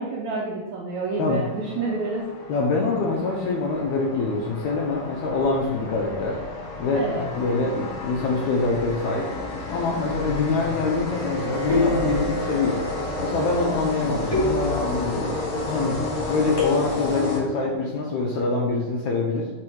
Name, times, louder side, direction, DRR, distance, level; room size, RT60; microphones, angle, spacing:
voice 1, 0.0-2.2 6.9-7.2, right 3 dB, 85° right, -3 dB, 1.6 m, -28 dB
sound 1, 1.1-17.9, left 2 dB, 65° left, 1.3 m, -32 dB
voice 2, 2.5-6.4 6.8-9.3 9.7-12.9 13.2-15.3 15.6-16.0 16.3-19.5, left 3 dB, 85° left, -2 dB, 1.6 m, -25 dB
sound 2, 9.3-9.8 11.7-12.6 14.3-15.3 16.6-17.3, left 3 dB, 45° left, 1.5 m, -27 dB
Bowed string instrument, 11.1-17.1, right 4 dB, 65° right, 1.7 m, -36 dB
5.0 x 4.2 x 4.5 m, 1.1 s
omnidirectional pair, 4.1 m